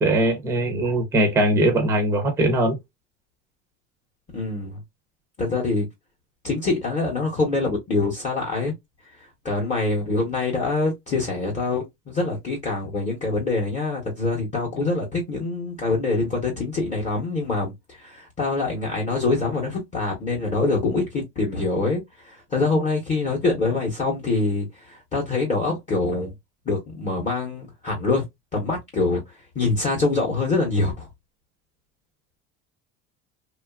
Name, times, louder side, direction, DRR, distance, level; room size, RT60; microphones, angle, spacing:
voice 1, 0.0-2.8, right 1 dB, 10° right, 0.5 m, -21 dB
voice 2, 4.3-4.8 5.4-5.9 6.4-8.7 9.2-26.3 26.6-28.2 28.5-31.1, left 3 dB, 25° left, 0.7 m, -25 dB
3.0 x 2.3 x 2.2 m
cardioid pair, 175°, 30 cm